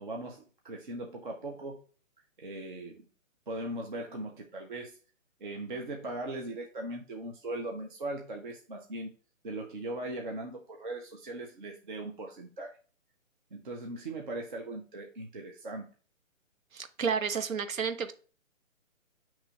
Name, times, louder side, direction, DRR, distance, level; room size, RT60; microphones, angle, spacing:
voice 1, 0.0-1.8 2.4-3.1 3.5-5.0 5.4-9.1 9.4-12.8 13.5-15.9, right 2 dB, 40° right, 1 dB, 0.5 m, -39 dB
voice 2, 16.7-18.1, right 6 dB, 85° right, 10 dB, 0.7 m, -31 dB
7.7 x 3.0 x 2.2 m, 0.40 s
figure-of-eight pair, 145°, 40 cm